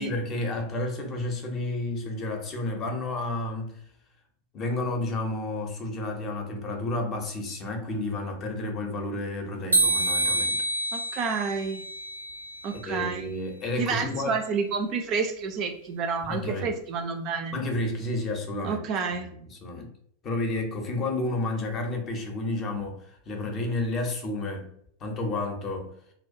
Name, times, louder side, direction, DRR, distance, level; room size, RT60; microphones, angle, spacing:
voice 1, 0.0-3.8 4.5-10.6 12.7-14.4 16.3-16.8 17.5-18.8 19.3-19.9 20.2-24.7 25.0-25.9, left 2 dB, 30° left, 3 dB, 0.6 m, -31 dB
sound 1, 9.7-12.8, right 2 dB, 85° right, 0.5 m, -27 dB
voice 2, 10.9-11.8 12.6-13.3 13.8-17.6 18.6-19.3, right 5 dB, 35° right, 4 dB, 0.4 m, -29 dB
2.3 x 2.1 x 2.6 m, 0.66 s
figure-of-eight pair, 90°, 0 cm